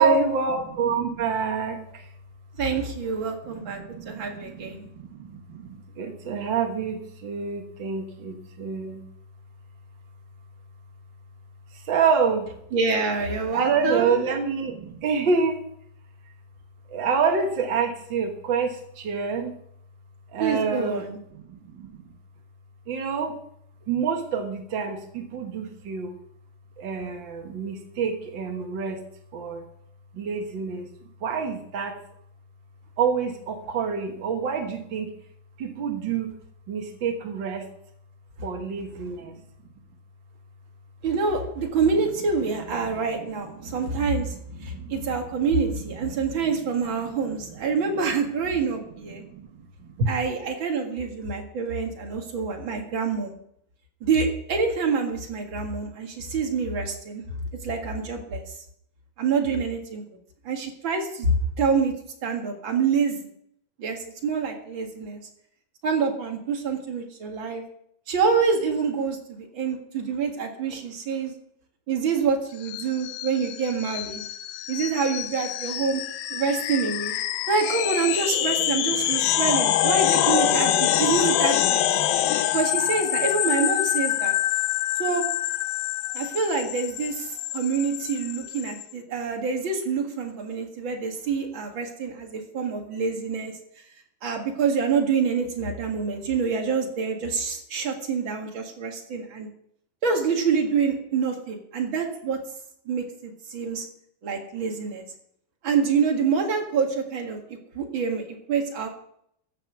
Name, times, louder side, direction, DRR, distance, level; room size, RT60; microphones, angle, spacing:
voice 1, 0.0-2.1 3.4-9.0 11.7-12.5 13.5-15.6 16.9-19.5 20.3-21.0 21.3-21.9 22.9-23.4 23.9-26.2 26.8-29.0 29.3-29.7 30.1-30.9 31.2-31.9 33.0-35.1 35.6-36.3 36.7-37.7 38.4-39.4 42.8-43.3 43.6-44.3 44.7-45.0 46.1-46.2 46.4-46.5 49.2-49.5 49.8-50.1, right 5 dB, 90° right, 4 dB, 1.0 m, -27 dB
voice 2, 2.6-4.8 12.7-14.2 20.4-21.2 41.0-44.4 44.6-49.2 50.1-53.3 54.0-57.2 57.6-58.4 59.2-60.0 60.4-61.9 62.2-63.3 63.8-65.2 65.8-67.6 68.1-71.3 71.9-74.2 74.7-76.0 76.3-77.1 77.5-81.8 82.5-84.3 85.0-85.2 86.1-93.5 94.2-99.5 100.0-102.4 102.9-103.8 104.2-105.0 105.6-108.9, right 5 dB, 45° right, 2 dB, 1.9 m, -26 dB
sound 1, 72.6-88.9, left 12 dB, 80° left, 2.5 m, -25 dB
14.5 x 7.6 x 6.2 m, 0.71 s
omnidirectional pair, 4.3 m